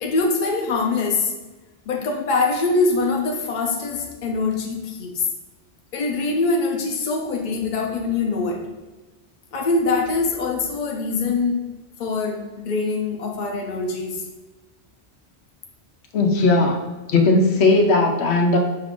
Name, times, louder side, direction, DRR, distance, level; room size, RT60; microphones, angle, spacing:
voice 1, 0.0-1.3 1.9-5.3 5.9-8.6 9.5-11.6 12.0-14.2, left 3 dB, 50° left, 2 dB, 0.7 m, -23 dB
voice 2, 16.1-16.8 17.1-18.6, left 2 dB, 90° left, 3 dB, 0.9 m, -17 dB
5.4 x 2.5 x 3.6 m, 1.1 s
omnidirectional pair, 1.1 m